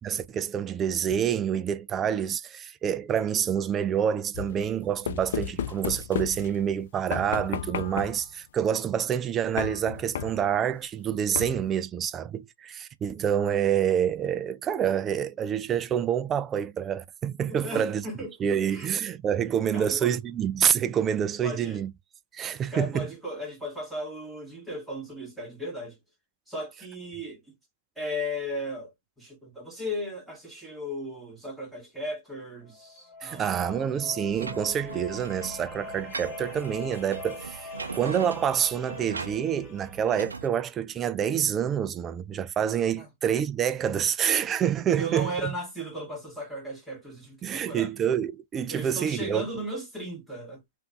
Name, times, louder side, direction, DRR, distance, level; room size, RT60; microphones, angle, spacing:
voice 1, 0.0-18.0 18.4-21.9 22.3-23.1 33.2-45.5 47.4-49.5, right 9 dB, 25° right, 0.3 m, -27 dB
sound 1, 4.3-6.7 7.1-8.3 9.6-10.6 11.4-11.8, left 9 dB, 60° left, 0.4 m, -34 dB
voice 2, 17.5-19.0 19.7-20.1 21.4-21.8 22.7-26.0 26.5-27.4 28.0-33.9 42.9-43.1 45.0-47.9 48.7-50.6, equal, ahead, 1.8 m, -36 dB
sound 2, 32.6-40.4, left 3 dB, 30° left, 0.9 m, -43 dB
sound 3, 34.3-40.5, right 4 dB, 90° right, 0.5 m, -40 dB
3.5 x 2.6 x 2.3 m
hypercardioid pair, 115°, 0 cm